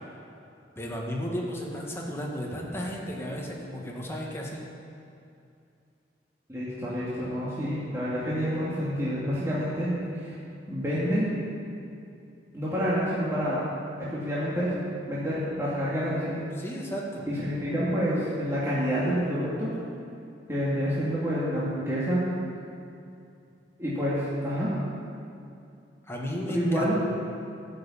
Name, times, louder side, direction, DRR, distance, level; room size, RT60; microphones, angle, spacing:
voice 1, 0.8-4.6 16.6-17.3 26.1-26.9, equal, 15° left, -2 dB, 1.7 m, -34 dB
voice 2, 6.5-9.9 10.2-10.4 10.7-11.3 12.5-13.6 14.1-14.7 15.1-16.4 17.3-19.7 20.5-22.2 23.8-24.7 26.5-26.9, equal, 15° right, -9 dB, 2.4 m, -28 dB
13.0 x 7.8 x 8.6 m, 2.6 s
head